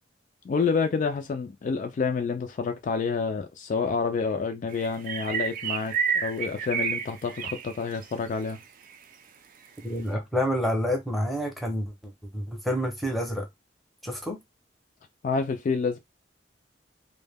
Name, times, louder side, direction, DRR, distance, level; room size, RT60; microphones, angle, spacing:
voice 1, 0.5-8.6 15.2-16.0, left 5 dB, 45° left, 0.3 m, -28 dB
sound 1, 4.7-8.1 8.4-8.5 8.9-9.0, right 6 dB, 50° right, 0.4 m, -30 dB
voice 2, 9.8-11.9 12.3-13.5 14.0-14.4, equal, ahead, 0.6 m, -28 dB
2.2 x 2.1 x 3.3 m
head